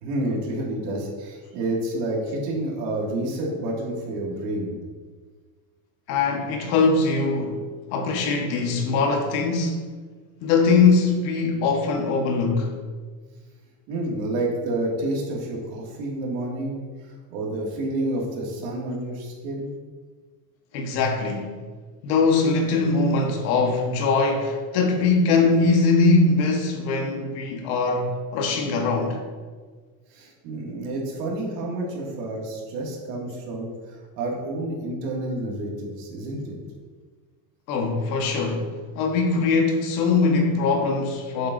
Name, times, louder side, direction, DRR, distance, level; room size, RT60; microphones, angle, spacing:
voice 1, 0.0-4.7 13.9-19.7 30.1-36.6, right 1 dB, 80° right, 2.4 m, -29 dB
voice 2, 6.1-7.6 7.9-9.9 10.4-12.7 20.7-21.6 22.0-29.2 37.7-38.7 38.9-41.5, left 4 dB, 70° left, 1.5 m, -21 dB
8.4 x 7.5 x 2.7 m
supercardioid pair, 140°, 49 cm